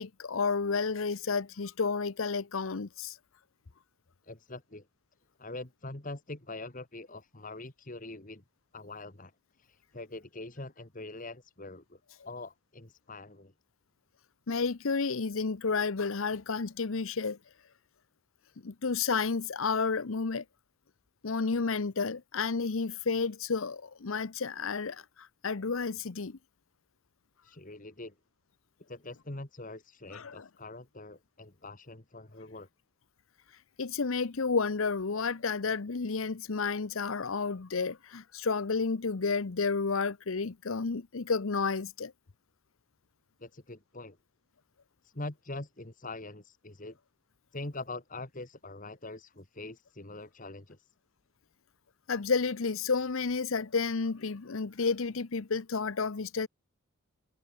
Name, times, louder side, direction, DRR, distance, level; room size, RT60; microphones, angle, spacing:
voice 1, 0.0-3.2 14.5-17.4 18.6-20.4 21.2-25.0 25.4-26.4 30.1-30.5 33.8-42.1 52.1-56.5, left 4 dB, 70° left, 0.8 m, -31 dB
voice 2, 4.2-4.9 5.4-8.4 8.7-9.3 9.6-13.5 27.4-28.1 28.9-32.7 43.4-44.2 45.0-47.0 47.5-50.9, left 2 dB, 40° left, 2.1 m, -43 dB
head